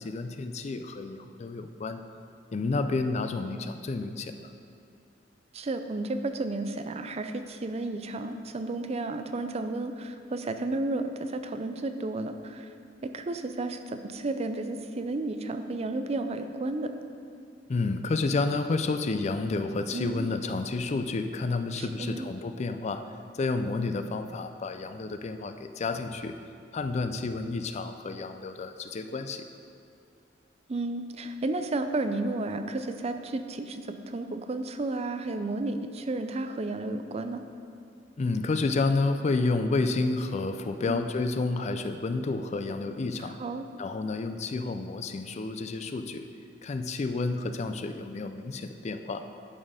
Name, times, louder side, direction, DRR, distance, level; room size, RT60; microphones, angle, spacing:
voice 1, 0.0-2.0 2.5-4.5 17.7-23.0 23.3-26.3 26.7-29.4 38.2-43.4 43.8-46.3 46.6-49.2, left 3 dB, 40° left, 8 dB, 0.4 m, -30 dB
voice 2, 5.5-12.7 13.0-16.9 19.9-20.3 21.8-22.3 30.7-37.4 40.9-41.1 43.2-43.7, right 2 dB, 35° right, 8 dB, 0.4 m, -32 dB
11.0 x 4.2 x 5.0 m, 2.4 s
head